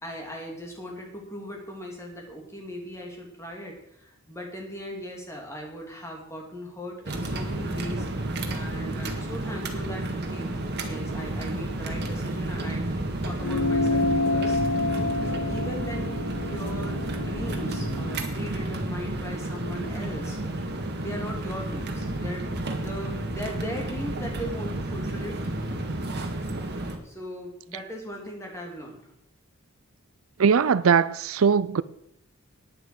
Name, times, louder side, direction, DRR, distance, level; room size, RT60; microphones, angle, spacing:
voice 1, 0.0-10.6 10.8-14.6 15.2-20.7 21.0-22.5 22.8-25.8 27.0-29.0, equal, 15° left, 3.0 m, -39 dB
sound 1, 7.1-27.0, right 1 dB, 50° right, 1.8 m, -31 dB
sound 2, 13.4-18.2, left 3 dB, 70° left, 0.8 m, -28 dB
voice 2, 30.4-31.8, right 6 dB, 70° right, 0.5 m, -20 dB
9.9 x 9.2 x 8.0 m
head